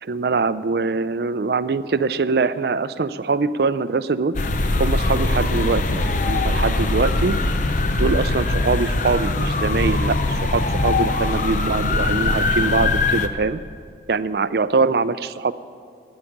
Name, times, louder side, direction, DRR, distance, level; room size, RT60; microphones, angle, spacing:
voice 1, 0.0-4.3 4.8-7.4 8.0-13.6 14.1-15.5, right 4 dB, 65° right, 15 dB, 0.4 m, -23 dB
sound 1, 4.3-13.3, left 2 dB, 45° left, 0.7 m, -21 dB
14.0 x 9.8 x 5.9 m, 2.3 s
head